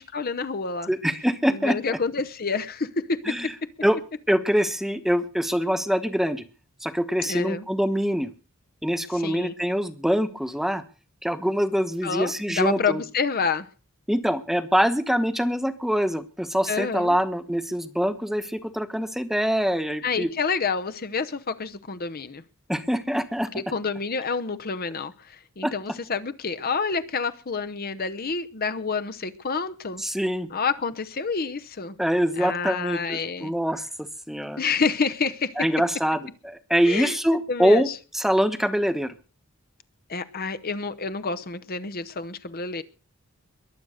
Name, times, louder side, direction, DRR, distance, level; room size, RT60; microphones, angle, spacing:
voice 1, 0.0-0.9 1.5-3.2 7.3-7.7 9.1-9.5 12.0-13.7 16.7-17.2 20.0-22.4 23.5-30.0 30.5-32.0 32.4-33.5 34.6-35.5 36.8-37.2 37.5-37.8 40.1-42.8, left 5 dB, 45° left, 11 dB, 0.8 m, -28 dB
voice 2, 0.9-2.0 3.2-3.5 3.8-4.0 4.3-6.4 6.8-8.3 8.8-10.8 11.2-13.0 14.1-20.3 22.7-23.5 25.6-25.7 30.0-30.5 32.0-34.6 35.6-39.1, equal, ahead, 11 dB, 1.1 m, -24 dB
22.0 x 8.0 x 6.4 m, 0.36 s
head